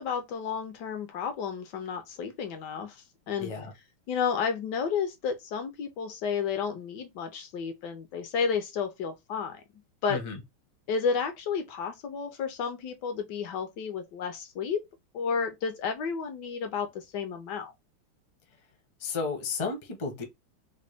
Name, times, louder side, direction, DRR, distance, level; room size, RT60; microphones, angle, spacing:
voice 1, 0.0-3.5 4.1-9.6 10.0-10.2 10.9-14.8 15.1-17.7, left 6 dB, 70° left, 1.1 m, -32 dB
voice 2, 3.4-3.7 10.1-10.4 19.0-20.2, left 4 dB, 35° left, 0.6 m, -33 dB
3.8 x 2.2 x 3.3 m
omnidirectional pair, 2.3 m